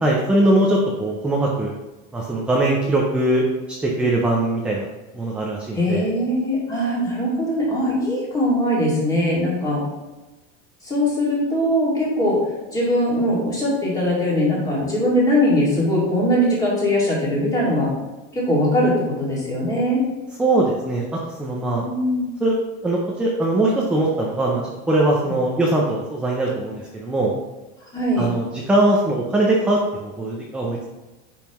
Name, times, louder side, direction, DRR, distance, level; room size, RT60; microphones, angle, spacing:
voice 1, 0.0-1.7 2.1-4.9 5.1-6.0 20.4-21.8 22.4-22.5 22.8-24.6 24.9-27.3 28.2-30.9, right 1 dB, 5° right, -3 dB, 0.4 m, -21 dB
voice 2, 5.7-9.8 10.8-12.4 12.7-17.9 18.3-20.0 21.9-22.2 27.9-28.3, equal, 10° left, -5 dB, 2.2 m, -21 dB
9.1 x 5.4 x 3.0 m, 1.1 s
cardioid pair, 170°, 31 cm